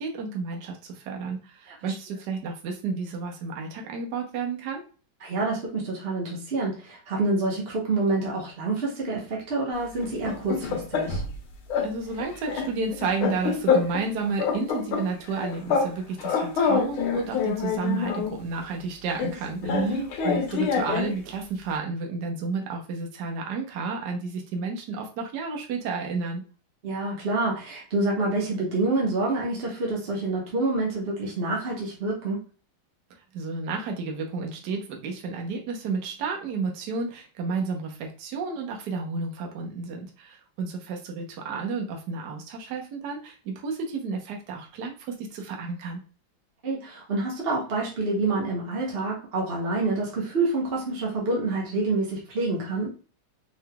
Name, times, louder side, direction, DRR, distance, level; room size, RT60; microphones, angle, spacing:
voice 1, 0.0-4.8 11.8-26.4 33.3-46.0, right 4 dB, 60° right, 2 dB, 1.3 m, -31 dB
voice 2, 5.2-11.2 19.6-20.0 26.8-32.4 46.6-52.9, right 2 dB, 40° right, -3 dB, 0.9 m, -27 dB
sound 1, 10.0-11.4 11.7-11.9 12.2-14.1 14.4-15.9 16.2-18.4 19.2-21.2, left 6 dB, 80° left, 1.7 m, -26 dB
4.8 x 3.2 x 2.2 m, 0.35 s
omnidirectional pair, 2.4 m